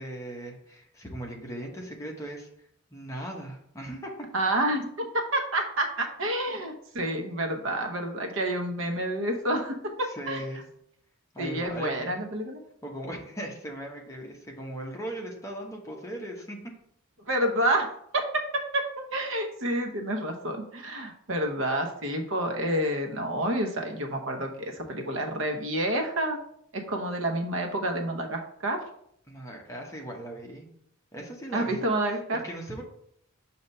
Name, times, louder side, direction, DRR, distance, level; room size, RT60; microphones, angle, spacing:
voice 1, 0.0-2.5 2.9-4.3 10.0-10.6 11.3-12.2 12.8-16.6 29.3-30.7 31.1-32.8, right 1 dB, 15° left, 0 dB, 1.0 m, -38 dB
voice 2, 4.3-10.4 11.4-12.6 17.3-17.9 18.1-26.4 26.7-28.8 31.5-32.4, right 1 dB, 65° right, 4 dB, 0.9 m, -29 dB
6.4 x 2.9 x 5.4 m, 0.69 s
head